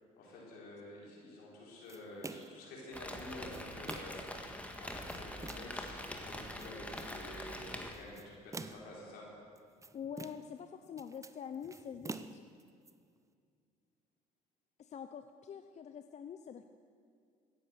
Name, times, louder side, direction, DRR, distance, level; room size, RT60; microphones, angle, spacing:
voice 1, 0.2-4.2 4.8-9.3, left 1 dB, 80° left, -3 dB, 4.4 m, -49 dB
sound 1, 1.9-2.6 3.2-4.3 4.8-5.8 6.4-7.2 7.9-9.0 9.6-10.6 10.9-12.9, right 3 dB, 20° right, 0.6 m, -48 dB
Rain, 2.9-7.9, left 1 dB, 10° left, 1.7 m, -44 dB
voice 2, 9.9-12.4 14.8-16.7, left 7 dB, 45° left, 9 dB, 0.6 m, -45 dB
16.0 x 9.8 x 6.5 m, 2.3 s
supercardioid pair, 75°, 16 cm